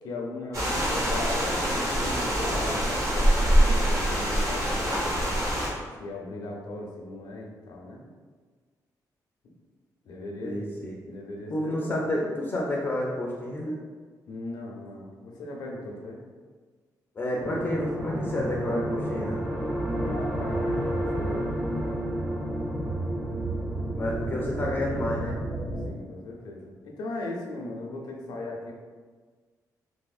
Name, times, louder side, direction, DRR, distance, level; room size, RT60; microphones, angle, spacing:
voice 1, 0.0-5.3 6.0-8.0 9.4-9.5 10.1-10.6 11.0-11.9 14.3-16.2 20.0-21.7 25.8-28.7, left 2 dB, 85° left, -1 dB, 0.6 m, -38 dB
sound 1, 0.5-5.7, equal, 50° right, 0.8 m, -24 dB
voice 2, 10.4-10.9 11.5-13.8 17.2-19.4 24.0-25.3, left 1 dB, 30° left, -3 dB, 0.4 m, -30 dB
sound 2, 17.4-25.9, right 1 dB, 15° right, 0.6 m, -30 dB
3.5 x 2.7 x 2.3 m, 1.5 s
cardioid pair, 140°, 7 cm